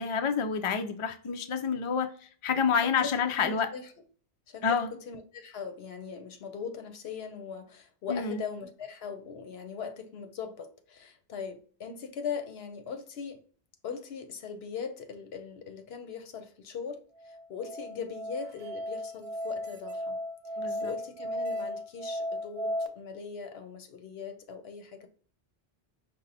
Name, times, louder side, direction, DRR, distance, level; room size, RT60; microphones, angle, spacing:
voice 1, 0.0-3.7 4.6-4.9 8.1-8.4 20.6-20.9, left 6 dB, 45° left, 0.4 m, -28 dB
voice 2, 2.8-3.1 3.4-3.9 4.5-13.4 13.8-20.2 20.8-25.1, left 6 dB, 75° left, 1.0 m, -40 dB
Musical instrument, 17.2-22.9, equal, 75° right, 0.9 m, -35 dB
5.3 x 2.1 x 4.0 m
omnidirectional pair, 1.1 m